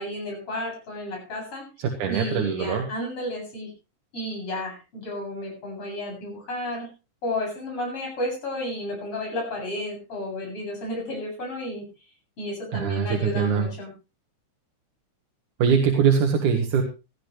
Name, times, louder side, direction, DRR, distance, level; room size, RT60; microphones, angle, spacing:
voice 1, 0.0-1.6 2.1-3.7 4.1-6.9 7.2-11.9 12.4-13.9, left 1 dB, 45° left, -1 dB, 8.6 m, -32 dB
voice 2, 1.8-2.9 12.7-13.7 15.6-16.8, right 6 dB, 80° right, 3 dB, 3.1 m, -22 dB
17.5 x 14.0 x 3.3 m, 0.30 s
omnidirectional pair, 3.5 m